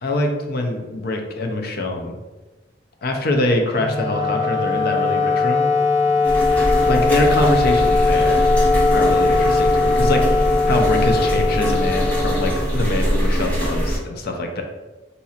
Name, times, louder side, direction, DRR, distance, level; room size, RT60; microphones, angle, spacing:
voice 1, 0.0-2.2 3.0-5.7 6.9-8.4 8.9-10.3 10.7-14.6, left 1 dB, 55° left, 3 dB, 0.5 m, -23 dB
Wind instrument woodwind instrument, 3.7-13.0, left 3 dB, 20° right, 0.5 m, -19 dB
sound 1, 6.2-14.0, equal, 10° left, 0.8 m, -22 dB
4.0 x 2.9 x 2.4 m, 1.2 s
head